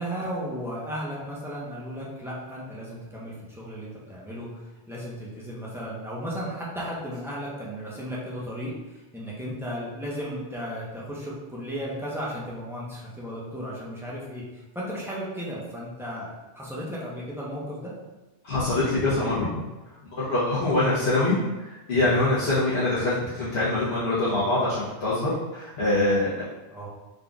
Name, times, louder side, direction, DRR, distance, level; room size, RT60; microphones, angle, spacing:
voice 1, 0.0-16.3 16.5-17.9 26.7-26.9, equal, 5° right, -7 dB, 0.7 m, -35 dB
voice 2, 18.4-19.5 20.2-26.3, left 2 dB, 65° left, -10 dB, 1.1 m, -24 dB
4.0 x 3.7 x 2.3 m, 1.1 s
omnidirectional pair, 1.2 m